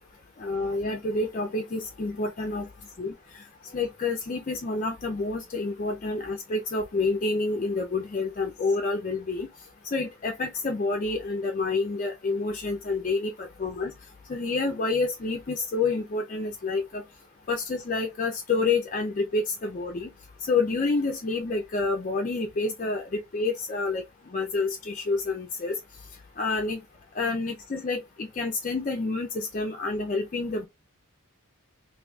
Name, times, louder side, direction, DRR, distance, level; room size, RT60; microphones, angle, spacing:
voice 1, 0.4-2.7 3.0-3.1 3.7-9.5 9.9-13.9 14.3-17.0 17.5-20.1 20.4-24.0 24.3-25.7 26.4-26.8 27.2-30.7, left 3 dB, 35° left, 0.4 m, -28 dB
3.9 x 2.5 x 2.3 m
head